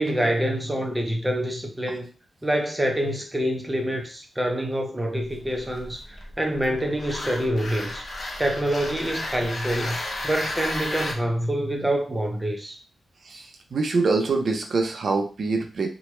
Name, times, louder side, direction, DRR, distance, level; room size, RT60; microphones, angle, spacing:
voice 1, 0.0-2.1 2.4-8.0 8.4-12.8, right 1 dB, 10° right, 2 dB, 0.5 m, -26 dB
sound 1, 5.2-11.1, left 1 dB, 40° left, 0.5 m, -33 dB
voice 2, 13.2-15.9, right 3 dB, 55° right, 3 dB, 0.6 m, -25 dB
3.0 x 2.2 x 3.1 m, 0.36 s
wide cardioid pair, 165°, 0 cm